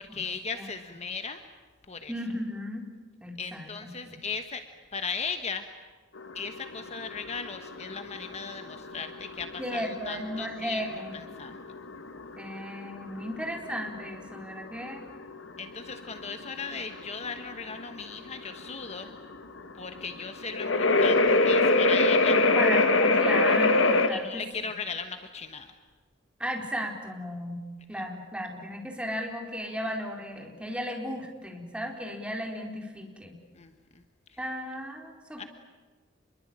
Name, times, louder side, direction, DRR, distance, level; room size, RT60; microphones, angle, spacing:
voice 1, 0.0-1.4 1.9-2.1 3.4-4.6 4.9-5.7 6.3-10.9 11.1-11.6 15.6-19.1 19.8-22.4 24.1-25.7 27.9-28.0 33.5-33.7 34.3-34.4 35.4-35.5, left 5 dB, 35° left, 7 dB, 1.3 m, -37 dB
voice 2, 2.1-2.9 3.2-3.7 4.0-4.2 9.6-11.2 12.4-15.1 22.6-24.5 26.4-27.6 27.9-33.4 34.4-35.5, equal, 5° right, 1 dB, 4.1 m, -35 dB
sound 1, 6.2-24.1, left 2 dB, 80° left, 2.0 m, -25 dB
27.5 x 22.5 x 8.8 m, 1.3 s
head